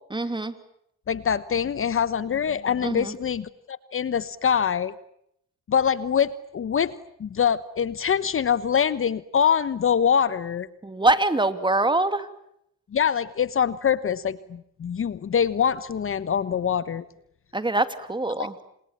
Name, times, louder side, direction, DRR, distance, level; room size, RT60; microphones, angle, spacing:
voice 1, 0.1-0.5 2.8-3.1 10.8-12.3 17.5-18.5, right 2 dB, 15° right, 11 dB, 2.6 m, -24 dB
voice 2, 1.1-4.9 5.7-6.9 7.2-10.7 12.9-17.0 18.4-18.5, left 7 dB, 45° left, 16 dB, 1.1 m, -24 dB
29.5 x 27.0 x 7.4 m, 0.74 s
cardioid pair, 90°, 30 cm